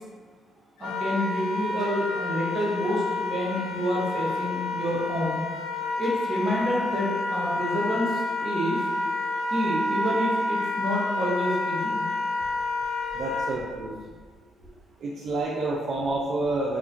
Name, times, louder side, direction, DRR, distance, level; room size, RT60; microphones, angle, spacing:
Wind instrument woodwind instrument, 0.8-13.5, left 2 dB, 90° left, 0.4 m, -29 dB
voice 1, 0.8-5.4 6.0-8.8 9.5-12.0, equal, 45° right, -5 dB, 0.9 m, -28 dB
voice 2, 13.1-14.0 15.0-16.8, right 2 dB, 65° right, -4 dB, 0.3 m, -28 dB
2.3 x 2.1 x 3.6 m, 1.5 s
cardioid pair, 90°, 0 cm